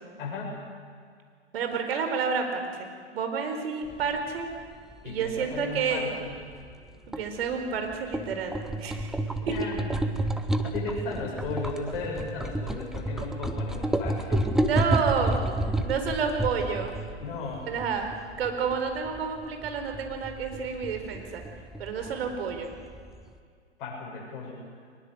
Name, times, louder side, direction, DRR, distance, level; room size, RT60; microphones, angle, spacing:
voice 1, 0.2-0.6 5.0-6.4 9.4-10.1 10.6-14.4 17.2-17.7 22.0-22.3 23.8-24.6, left 3 dB, 45° left, -2 dB, 7.5 m, -36 dB
voice 2, 1.5-4.5 5.0-6.2 7.2-9.1 9.5-9.6 14.3-15.4 15.8-16.9 17.6-18.1 18.4-21.4 21.8-22.7, right 6 dB, 55° right, 5 dB, 4.6 m, -30 dB
sound 1, 3.9-23.4, right 1 dB, ahead, 0.5 m, -31 dB
23.0 x 21.0 x 8.1 m, 2.1 s
hypercardioid pair, 135°, 36 cm